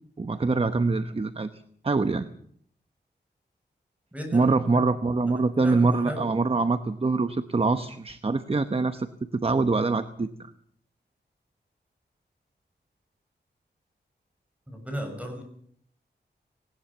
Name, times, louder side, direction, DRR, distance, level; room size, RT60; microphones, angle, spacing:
voice 1, 0.2-1.5 1.8-2.3 4.3-9.1 9.3-10.3, right 3 dB, 30° right, 10 dB, 0.9 m, -24 dB
voice 2, 4.1-4.9 5.3-6.4 14.7-15.4, equal, 5° right, 4 dB, 7.0 m, -36 dB
19.0 x 19.0 x 7.2 m, 0.63 s
wide cardioid pair, 110°, 19 cm